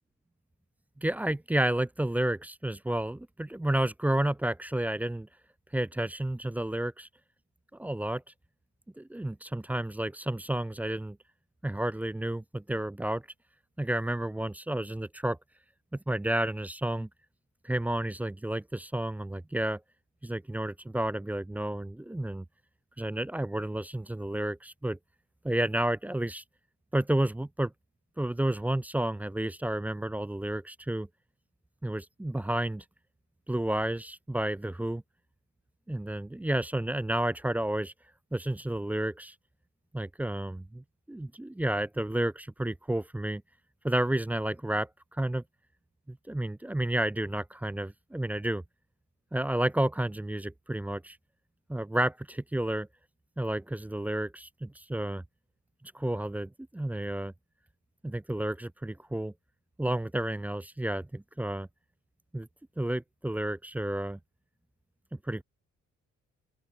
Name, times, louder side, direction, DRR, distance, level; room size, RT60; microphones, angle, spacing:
voice 1, 1.0-5.3 5.7-7.1 7.7-8.2 9.0-11.2 11.6-13.2 13.8-15.4 15.9-17.1 17.6-19.8 20.2-22.4 23.0-25.0 25.4-26.4 26.9-27.7 28.2-31.1 31.8-32.8 33.5-35.0 35.9-37.9 38.3-39.3 39.9-43.4 43.8-45.4 46.1-48.6 49.3-51.2 51.7-52.9 53.4-55.2 55.9-57.3 58.0-59.3 59.8-61.7 62.3-62.5 62.8-64.2 65.2-65.4, right 1 dB, 5° right, 0.3 m, -31 dB
open air
cardioid pair, 90°, 30 cm